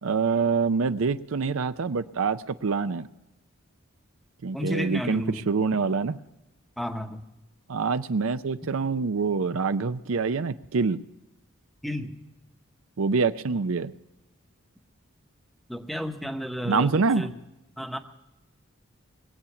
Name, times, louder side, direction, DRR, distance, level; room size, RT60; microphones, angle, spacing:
voice 1, 0.0-3.1 4.4-6.2 7.7-11.0 13.0-13.9 16.6-17.3, right 4 dB, 70° right, 12 dB, 0.5 m, -25 dB
voice 2, 4.5-5.4 6.8-7.2 11.8-12.2 15.7-17.3 17.8-18.0, equal, ahead, 6 dB, 0.9 m, -32 dB
22.0 x 8.5 x 5.8 m, 0.97 s
head